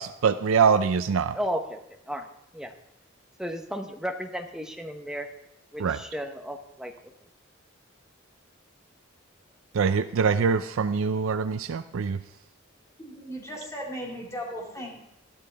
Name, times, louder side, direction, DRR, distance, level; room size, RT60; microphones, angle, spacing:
voice 1, 0.0-1.4 5.8-6.0 9.7-12.2, right 6 dB, 75° right, 11 dB, 0.4 m, -24 dB
voice 2, 1.3-1.8 2.1-2.3 2.5-2.7 3.4-5.3 5.7-6.9, equal, 5° right, 5 dB, 0.8 m, -33 dB
voice 3, 13.0-14.9, equal, 15° left, -2 dB, 2.3 m, -37 dB
13.0 x 12.0 x 3.4 m, 0.82 s
head